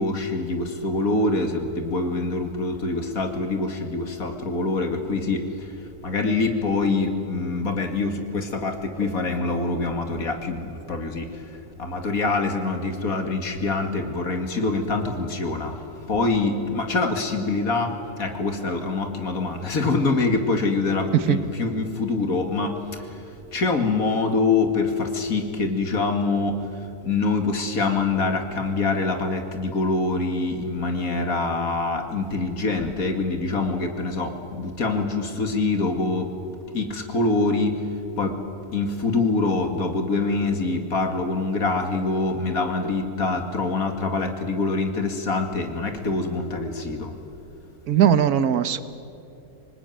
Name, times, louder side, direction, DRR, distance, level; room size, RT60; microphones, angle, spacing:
voice 1, 0.0-5.7 6.0-11.5 11.8-23.3 23.5-37.8 38.2-38.3 38.7-47.1, left 3 dB, 70° left, 5 dB, 2.6 m, -25 dB
voice 2, 47.9-48.8, right 9 dB, 80° right, 13 dB, 1.5 m, -19 dB
25.5 x 19.5 x 9.3 m, 2.6 s
omnidirectional pair, 1.6 m